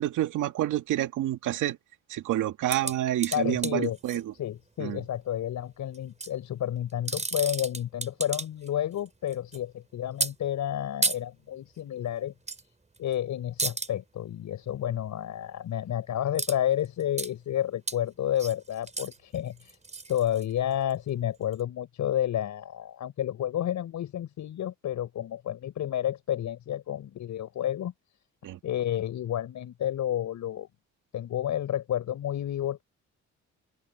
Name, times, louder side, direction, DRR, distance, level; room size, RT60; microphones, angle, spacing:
voice 1, 0.0-1.8 2.1-4.3 4.8-5.0 28.4-28.6, right 13 dB, 85° right, 2.2 m, -28 dB
sound 1, 2.7-4.2 5.9-6.3 6.9-8.7 9.0-9.6 10.2-10.3 11.0-11.2 12.5-12.6 12.9-13.1 13.6-13.9 16.4-16.6 16.8-17.3 17.9-18.0 18.4-20.9 21.5-21.6, right 3 dB, 20° right, 7.0 m, -32 dB
voice 2, 3.3-4.0 4.3-12.3 13.0-19.8 20.1-27.9 28.6-30.7 31.1-32.8, left 11 dB, 70° left, 6.4 m, -30 dB
open air
cardioid pair, 90°, 30 cm